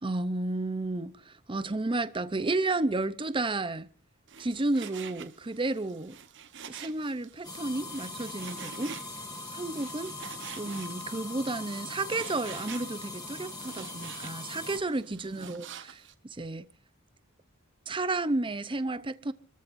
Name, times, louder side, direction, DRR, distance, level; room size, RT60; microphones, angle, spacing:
voice 1, 0.0-3.9 4.4-6.2 6.6-9.0 9.5-10.1 10.6-16.7 17.9-19.3, right 2 dB, 25° right, 0.7 m, -32 dB
Frying (food), 4.3-16.1, right 7 dB, 60° right, 1.1 m, -47 dB
sound 1, 7.4-14.8, left 2 dB, 20° left, 5.4 m, -41 dB
28.5 x 14.0 x 2.6 m
head